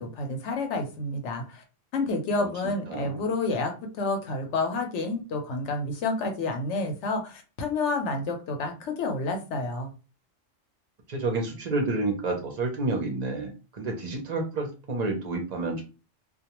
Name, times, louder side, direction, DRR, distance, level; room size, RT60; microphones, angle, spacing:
voice 1, 0.0-1.6 1.9-9.9, left 3 dB, 70° left, 4 dB, 0.9 m, -29 dB
voice 2, 2.4-3.3 11.1-15.8, right 2 dB, 50° right, 2 dB, 0.5 m, -30 dB
2.2 x 2.2 x 2.9 m, 0.33 s
omnidirectional pair, 1.3 m